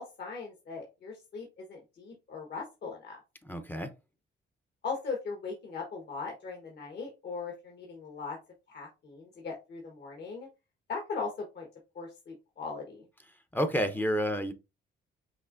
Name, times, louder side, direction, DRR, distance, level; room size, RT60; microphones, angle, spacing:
voice 1, 0.0-3.2 4.8-8.4 8.7-10.5 10.9-11.7 11.9-13.0, left 4 dB, 55° left, 1.3 m, -39 dB
voice 2, 3.4-3.9 13.5-14.5, equal, 10° left, 0.6 m, -29 dB
5.6 x 3.3 x 2.5 m
cardioid pair, 90°, 20 cm